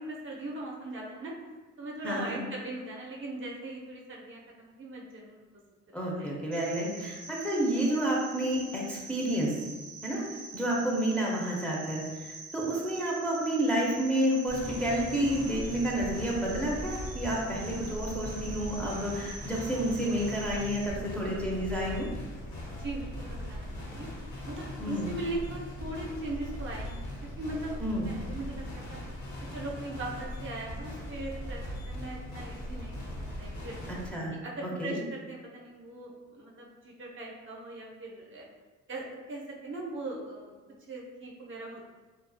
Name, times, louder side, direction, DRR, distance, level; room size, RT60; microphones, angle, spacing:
voice 1, 0.0-1.3 1.8-5.4 5.9-6.5 22.8-24.1 24.4-27.8 28.1-29.0 29.5-33.7 34.3-38.5 38.9-40.6 40.9-41.9, right 2 dB, 40° right, -3 dB, 0.6 m, -40 dB
voice 2, 2.0-2.4 5.9-9.5 10.0-10.2 10.5-22.1 24.8-25.1 27.8-28.1 33.9-34.3 34.6-35.0, right 1 dB, 5° left, -5 dB, 0.5 m, -30 dB
Cricket, 6.5-20.9, right 3 dB, 85° right, 0.5 m, -45 dB
sound 1, 14.5-34.1, left 1 dB, 70° left, 0.9 m, -40 dB
2.4 x 2.3 x 2.5 m, 1.3 s
cardioid pair, 90°, 30 cm